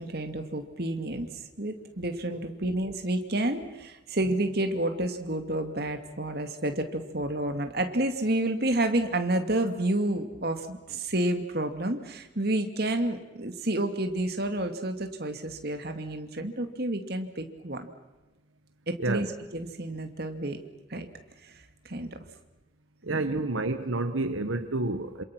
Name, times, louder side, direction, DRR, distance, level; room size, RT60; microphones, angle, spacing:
voice 1, 0.0-17.9 18.9-19.3 19.5-20.6 20.9-21.1 21.4-21.6 21.8-22.2 23.1-23.4, right 1 dB, 55° right, 6 dB, 2.4 m, -30 dB
voice 2, 23.0-25.2, right 2 dB, 85° right, 9 dB, 1.3 m, -29 dB
27.5 x 27.0 x 6.1 m, 1.1 s
head